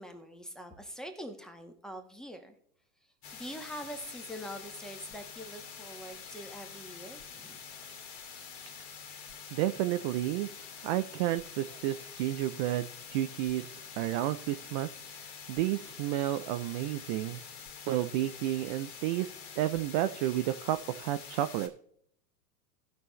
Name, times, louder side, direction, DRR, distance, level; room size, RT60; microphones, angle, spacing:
voice 1, 0.0-2.5 3.3-7.6, equal, ahead, 5 dB, 1.4 m, -44 dB
sound 1, 3.2-21.7, left 6 dB, 50° left, 2.3 m, -47 dB
voice 2, 9.5-10.5 10.8-14.9 15.2-17.4 17.9-19.3 19.6-21.7, right 14 dB, 35° right, 10 dB, 0.4 m, -31 dB
17.0 x 6.0 x 3.1 m, 0.68 s
hypercardioid pair, 110°, 45 cm